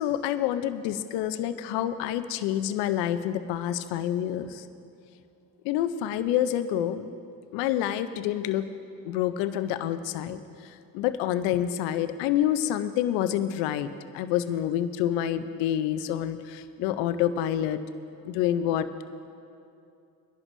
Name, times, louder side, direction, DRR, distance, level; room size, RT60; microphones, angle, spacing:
voice 1, 0.0-4.6 5.6-7.2 7.5-8.7 9.0-10.4 10.9-17.8 18.2-18.9, left 11 dB, 85° left, 11 dB, 0.7 m, -27 dB
24.0 x 11.0 x 2.7 m, 2.6 s
hypercardioid pair, 50°, 42 cm